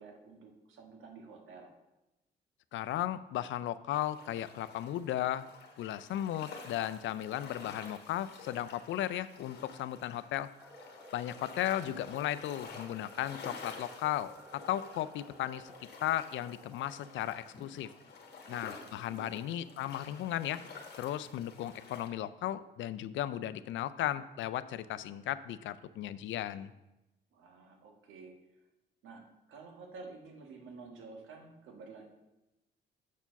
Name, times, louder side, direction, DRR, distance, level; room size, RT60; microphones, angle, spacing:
voice 1, 0.0-1.7 18.4-19.5 27.3-28.3 29.0-29.2 29.5-32.1, right 4 dB, 85° right, 2 dB, 1.4 m, -51 dB
voice 2, 2.7-5.5 5.8-10.5 11.1-15.7 16.0-17.9 18.5-20.6 21.0-26.7, left 12 dB, 75° left, 15 dB, 0.4 m, -35 dB
sound 1, 3.9-22.1, left 4 dB, 55° left, 1.3 m, -51 dB
sound 2, 10.6-18.9, equal, 10° right, 2.1 m, -56 dB
7.1 x 4.5 x 5.8 m, 0.97 s
cardioid pair, 90°, 20 cm